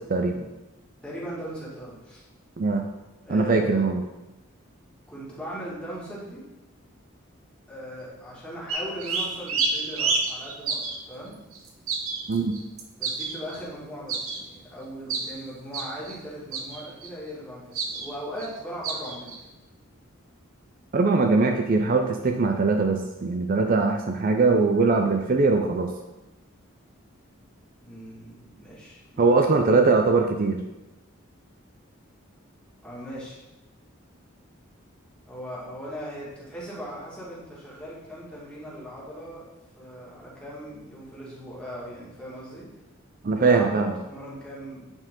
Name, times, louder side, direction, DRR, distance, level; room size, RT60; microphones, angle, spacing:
voice 1, 0.1-0.5 2.6-2.9 3.3-4.0 12.3-12.5 20.9-25.9 29.2-30.6 43.2-43.9, right 3 dB, 45° right, 4 dB, 0.5 m, -21 dB
voice 2, 1.0-2.2 3.3-3.9 5.1-6.4 7.7-11.4 13.0-19.4 27.8-29.6 32.8-33.4 35.2-39.5 39.8-42.6 43.3-44.9, equal, 5° left, -7 dB, 2.1 m, -39 dB
sound 1, 8.7-10.9 11.5-13.6 14.1-14.4 15.1-15.3 15.7-16.2 16.5-17.1 17.8-18.1 18.4-18.5 18.8-19.4, right 4 dB, 90° right, 1.0 m, -28 dB
8.7 x 4.5 x 3.8 m, 1.0 s
head